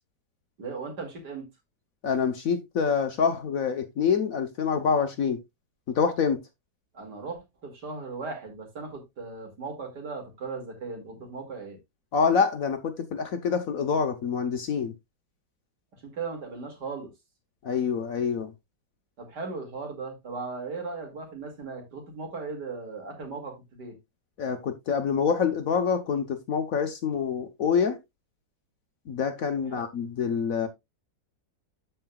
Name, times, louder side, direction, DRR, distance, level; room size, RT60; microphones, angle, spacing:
voice 1, 0.6-1.5 6.9-11.8 15.9-17.1 19.2-24.0 29.7-29.9, right 4 dB, 65° right, 2.8 m, -37 dB
voice 2, 2.0-5.4 5.9-6.4 12.1-14.9 17.6-18.5 24.4-28.0 29.1-30.7, left 6 dB, 60° left, 1.1 m, -26 dB
13.5 x 4.7 x 2.3 m
omnidirectional pair, 2.0 m